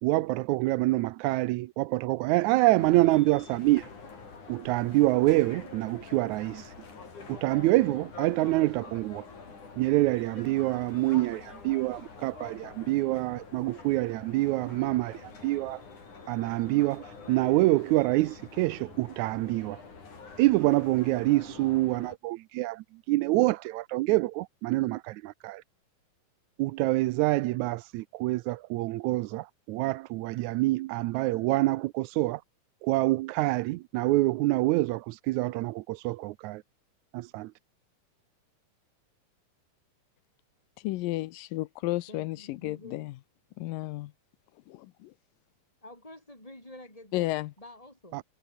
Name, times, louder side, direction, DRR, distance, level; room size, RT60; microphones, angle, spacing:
voice 1, 0.0-3.9 4.5-6.7 7.3-9.2 9.8-15.8 16.3-19.8 20.4-25.6 26.6-32.4 32.8-36.6 37.1-37.5 48.1-48.2, right 19 dB, 80° right, 1.8 m, -26 dB
sound 1, 2.8-22.2, left 4 dB, 65° left, 6.9 m, -46 dB
voice 2, 40.8-43.1 43.6-44.1 44.7-45.1 47.1-47.5, left 18 dB, 85° left, 2.5 m, -33 dB
voice 3, 42.1-43.1 45.8-47.3 47.6-48.2, left 1 dB, 10° left, 7.3 m, -48 dB
omnidirectional pair, 3.8 m